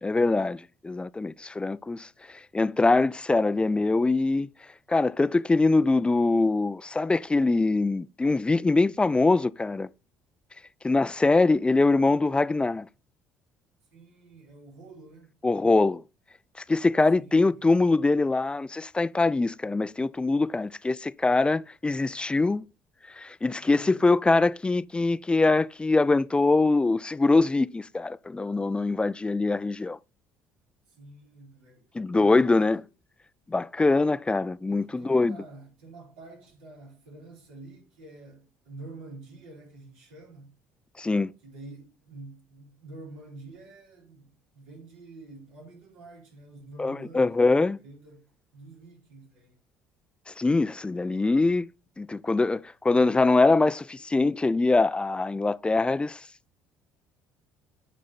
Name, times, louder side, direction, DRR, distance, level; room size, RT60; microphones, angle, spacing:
voice 1, 0.0-4.5 4.9-9.9 10.8-12.9 15.4-16.0 16.6-22.7 23.1-30.0 31.9-32.8 33.5-35.4 41.0-41.3 46.8-47.8 50.3-51.7 52.0-56.3, left 3 dB, 15° left, 0.4 m, -23 dB
voice 2, 13.9-15.3 17.2-17.5 23.6-24.1 30.9-31.9 32.2-32.8 34.7-40.6 41.4-47.5 47.8-48.3 48.5-49.6, right 2 dB, 85° right, 4.1 m, -48 dB
8.7 x 5.1 x 4.2 m
supercardioid pair, 75°, 6 cm